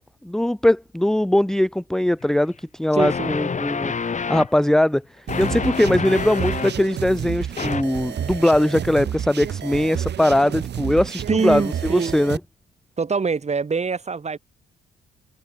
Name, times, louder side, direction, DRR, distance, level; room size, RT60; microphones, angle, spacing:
voice 1, 0.2-12.4, left 1 dB, ahead, 0.7 m, -21 dB
sound 1, 2.2-2.3 3.0-4.5 5.3-6.8 7.6-7.8, left 5 dB, 40° left, 5.0 m, -27 dB
voice 2, 2.9-3.3 11.3-12.2 13.0-14.4, right 5 dB, 35° right, 6.1 m, -24 dB
sound 2, 5.3-12.4, right 9 dB, 60° right, 2.4 m, -30 dB
cardioid pair, 90°, 20 cm